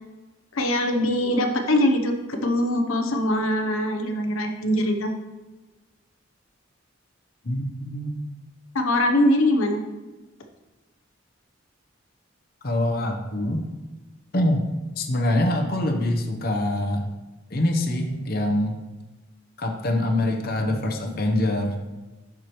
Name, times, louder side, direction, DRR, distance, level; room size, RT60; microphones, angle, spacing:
voice 1, 0.5-5.1 8.7-9.8, left 1 dB, 85° left, 4 dB, 0.7 m, -22 dB
voice 2, 7.4-8.2 12.6-13.7 14.3-14.6 15.0-17.0 17.5-18.7 19.6-21.8, left 1 dB, 45° left, 3 dB, 0.8 m, -24 dB
11.0 x 4.8 x 3.0 m, 1.2 s
head